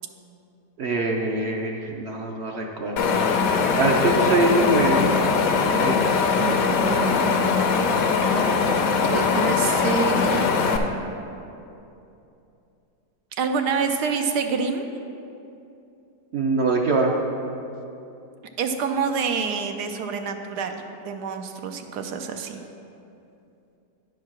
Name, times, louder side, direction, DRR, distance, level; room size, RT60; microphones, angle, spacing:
voice 1, 0.8-5.1 5.8-6.2 16.3-17.1, right 2 dB, 60° right, 1 dB, 0.7 m, -24 dB
Wind, 3.0-10.8, left 5 dB, 65° left, 1.0 m, -21 dB
voice 2, 6.3-7.4 9.1-10.6 13.4-14.9 18.6-22.6, right 5 dB, 85° right, 5 dB, 1.2 m, -27 dB
10.5 x 4.7 x 6.0 m, 2.7 s
omnidirectional pair, 1.7 m